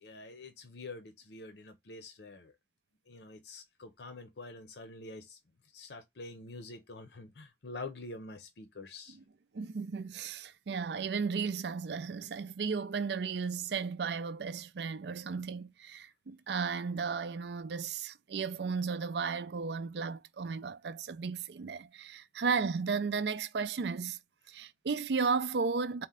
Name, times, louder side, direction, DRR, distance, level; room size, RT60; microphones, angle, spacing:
voice 1, 0.0-2.5 3.1-5.4 5.7-9.2, left 2 dB, 70° left, 0.6 m, -46 dB
voice 2, 9.5-24.2 24.5-26.1, right 5 dB, 70° right, 0.4 m, -34 dB
4.3 x 2.1 x 3.5 m
head